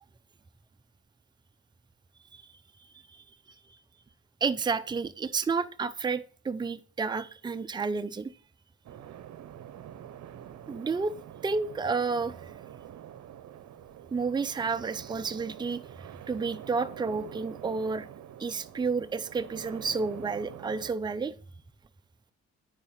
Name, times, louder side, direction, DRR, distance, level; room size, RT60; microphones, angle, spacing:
voice 1, 4.4-8.3 10.7-11.1 11.4-12.3 14.1-15.8 16.3-18.1 18.4-21.3, right 4 dB, 15° right, 0.5 m, -30 dB
sound 1, 8.8-20.9, right 10 dB, 65° right, 0.8 m, -46 dB
10.5 x 4.9 x 4.2 m
cardioid pair, 90°, 30 cm